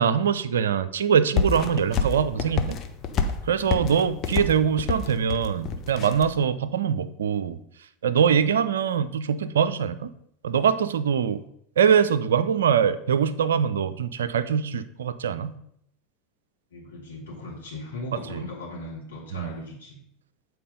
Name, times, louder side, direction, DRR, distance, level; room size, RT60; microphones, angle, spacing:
voice 1, 0.0-2.8 3.4-7.6 8.0-10.1 10.4-11.4 11.8-15.5 18.3-18.4 19.3-19.5, right 7 dB, 70° right, 14 dB, 0.4 m, -23 dB
sound 1, 1.4-6.3, left 5 dB, 35° left, 0.9 m, -28 dB
voice 2, 3.6-4.0 16.7-20.0, left 1 dB, 75° left, -4 dB, 2.9 m, -38 dB
8.4 x 4.5 x 5.3 m, 0.70 s
figure-of-eight pair, 80°, 0 cm